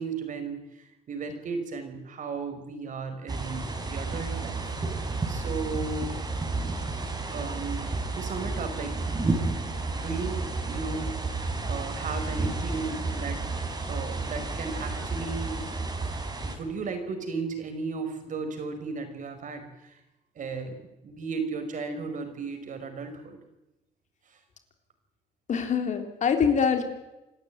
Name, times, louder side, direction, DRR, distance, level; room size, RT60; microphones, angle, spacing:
voice 1, 0.0-4.7 5.3-6.1 7.3-7.9 8.1-9.1 9.9-10.4 10.7-13.4 13.9-15.8 16.4-20.0 20.4-23.4 24.3-24.4, right 4 dB, 50° right, 7 dB, 5.2 m, -35 dB
sound 1, 3.3-16.6, right 3 dB, 25° right, 4.8 m, -31 dB
voice 2, 25.5-26.9, left 6 dB, 45° left, 7 dB, 3.3 m, -24 dB
27.0 x 13.5 x 9.5 m, 0.97 s
cardioid pair, 110°, 17 cm